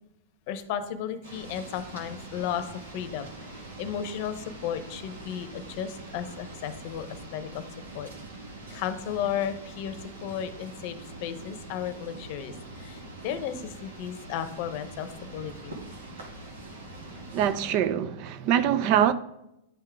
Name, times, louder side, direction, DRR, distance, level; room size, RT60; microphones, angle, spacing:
voice 1, 0.5-2.7 2.9-3.3 3.8-7.1 7.3-7.6 7.9-8.1 8.7-15.8, left 9 dB, 55° left, 0.7 m, -34 dB
sound 1, 1.2-17.7, right 2 dB, 90° right, 1.7 m, -43 dB
voice 2, 17.3-19.1, right 10 dB, 50° right, 0.5 m, -24 dB
9.9 x 3.7 x 3.4 m
hypercardioid pair, 125°, 0 cm